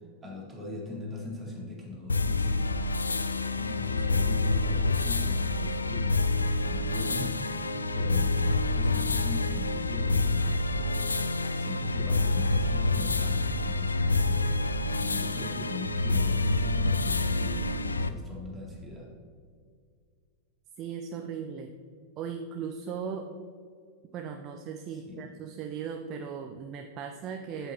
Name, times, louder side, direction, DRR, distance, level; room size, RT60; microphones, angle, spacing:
voice 1, 0.2-2.7 3.5-7.3 7.9-11.1 11.6-14.4 15.0-19.1 24.9-25.3, left 2 dB, 15° right, -3 dB, 2.0 m, -40 dB
sound 1, 2.1-18.1, left 2 dB, 80° left, 0.3 m, -27 dB
voice 2, 20.8-21.7 22.2-23.3 24.1-27.7, right 7 dB, 35° right, 5 dB, 0.5 m, -37 dB
8.1 x 7.4 x 2.9 m, 2.1 s
figure-of-eight pair, 90°, 0 cm